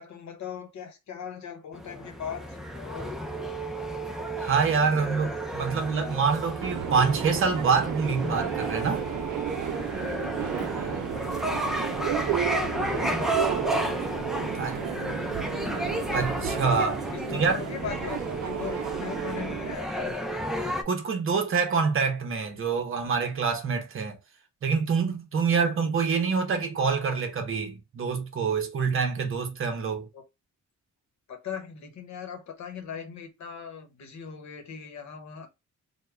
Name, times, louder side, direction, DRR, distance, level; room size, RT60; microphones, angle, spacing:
voice 1, 0.0-3.2 10.2-14.0 14.4-15.2 17.1-20.2 30.1-30.2 31.3-35.5, left 7 dB, 65° left, 0.9 m, -40 dB
sound 1, 1.7-20.8, right 1 dB, ahead, 0.3 m, -32 dB
voice 2, 4.4-9.0 14.5-14.8 16.1-17.1 17.3-17.6 20.8-24.2 24.6-30.1, right 5 dB, 45° right, 0.7 m, -26 dB
Subway metro underground, 6.6-19.7, right 11 dB, 85° right, 0.5 m, -33 dB
3.5 x 2.2 x 3.2 m
wide cardioid pair, 170°, 30 cm